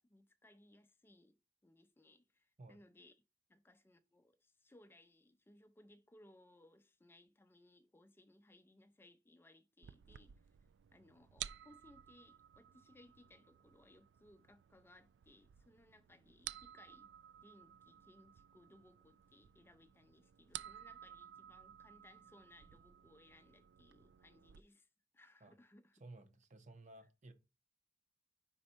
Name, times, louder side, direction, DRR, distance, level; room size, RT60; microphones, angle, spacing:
voice 1, 0.0-1.4 1.6-3.2 3.5-10.3 10.9-17.1 17.4-24.9 25.1-25.9, left 1 dB, 15° left, 0.4 m, -65 dB
sound 1, 9.8-24.6, right 12 dB, 90° right, 0.3 m, -54 dB
voice 2, 25.9-27.3, right 2 dB, 45° right, 0.9 m, -56 dB
5.2 x 4.2 x 4.3 m
head